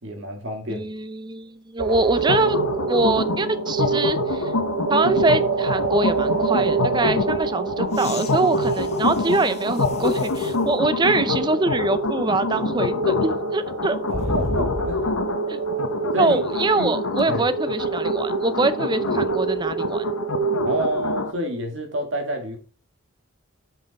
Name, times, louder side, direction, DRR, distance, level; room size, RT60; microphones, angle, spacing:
voice 1, 0.0-0.9 14.1-15.0 16.1-16.4 16.8-17.0 17.3-17.4 20.6-22.6, right 1 dB, 60° right, 2.0 m, -28 dB
voice 2, 0.7-2.6 2.9-4.5 4.9-14.0 15.5-15.6 16.2-20.0, right 3 dB, 20° right, 0.5 m, -24 dB
sound 1, 1.8-20.9, right 5 dB, 85° right, 0.8 m, -27 dB
sound 2, 2.1-21.3, left 4 dB, 90° left, 0.9 m, -27 dB
sound 3, 7.9-10.7 11.3-11.4 14.1-15.3 17.2-17.3, left 2 dB, 30° left, 0.5 m, -34 dB
7.8 x 5.5 x 4.1 m
head